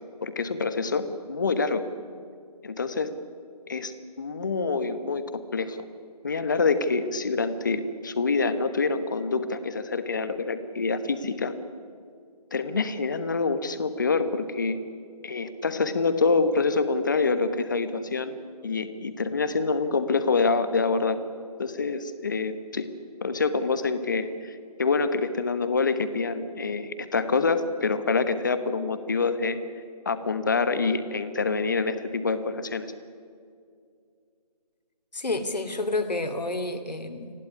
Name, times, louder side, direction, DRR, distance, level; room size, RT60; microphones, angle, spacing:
voice 1, 0.2-1.8 2.6-3.1 3.7-5.8 6.2-11.5 12.5-14.8 15.2-21.2 21.6-22.9 23.2-29.6 30.0-32.9, left 4 dB, 30° left, 11 dB, 1.1 m, -26 dB
voice 2, 35.1-37.3, left 2 dB, 90° left, 7 dB, 2.9 m, -29 dB
29.0 x 11.5 x 9.8 m, 2.3 s
figure-of-eight pair, 175°, 21 cm